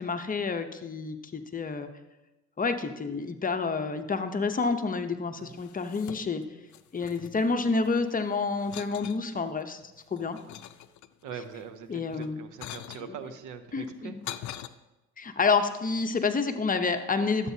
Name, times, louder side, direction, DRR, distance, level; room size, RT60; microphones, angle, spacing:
voice 1, 0.0-1.9 2.6-6.4 6.9-9.8 10.1-10.4 11.9-12.4 13.1-13.2 13.7-14.2 15.2-17.5, left 4 dB, 30° left, 7 dB, 0.8 m, -29 dB
sound 1, 5.5-6.5 6.7-8.1 8.6-9.2 9.8-11.3 12.1-13.1 13.8-14.7, left 12 dB, 70° left, 0.5 m, -43 dB
voice 2, 11.2-14.2, right 7 dB, 90° right, 10 dB, 0.7 m, -42 dB
12.0 x 8.1 x 2.8 m, 1.0 s
cardioid pair, 90°, 30 cm